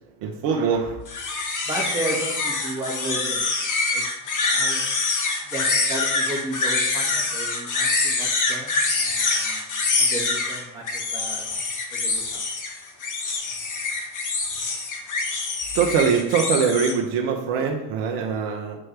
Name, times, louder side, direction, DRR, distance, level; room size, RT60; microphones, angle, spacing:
voice 1, 0.2-1.0 15.7-18.8, right 6 dB, 70° right, 1 dB, 0.9 m, -23 dB
sound 1, 1.1-16.9, left 3 dB, 40° left, 1.6 m, -25 dB
voice 2, 1.6-3.4 3.9-4.0 4.5-4.8 5.5-9.6 10.0-11.4 11.9-12.4, right 2 dB, 10° right, -5 dB, 1.8 m, -33 dB
7.4 x 4.5 x 3.3 m, 0.93 s
hypercardioid pair, 70°, 44 cm